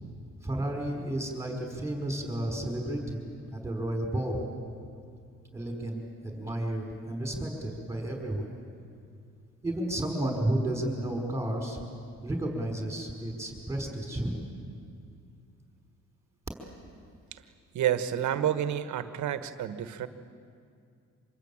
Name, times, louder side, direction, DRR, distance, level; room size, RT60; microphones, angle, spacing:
voice 1, 0.4-4.4 5.5-8.5 9.6-11.8 12.2-14.5, right 1 dB, 10° right, 2 dB, 5.1 m, -32 dB
voice 2, 17.7-20.1, right 10 dB, 75° right, 11 dB, 1.4 m, -29 dB
26.0 x 21.5 x 8.8 m, 2.3 s
cardioid pair, 90°, 30 cm